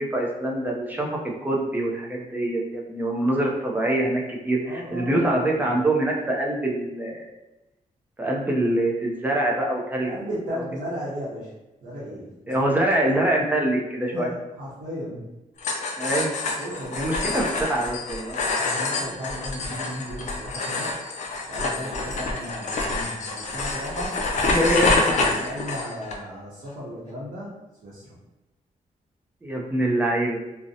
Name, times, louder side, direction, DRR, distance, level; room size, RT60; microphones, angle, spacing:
voice 1, 0.0-7.3 8.2-10.1 12.5-14.3 16.0-16.3 16.9-17.4 17.7-18.4 24.4-25.5 29.4-30.4, right 1 dB, 10° right, -2 dB, 0.4 m, -24 dB
voice 2, 4.6-5.7 10.0-11.5 11.8-13.1 14.1-15.3 16.6-17.5 18.6-21.0 21.4-24.2 24.5-27.5 27.8-28.2, equal, 80° right, -8 dB, 0.7 m, -35 dB
sound 1, 15.6-26.2, left 3 dB, 55° left, 0.4 m, -27 dB
2.5 x 2.0 x 2.6 m, 0.99 s
wide cardioid pair, 165°, 14 cm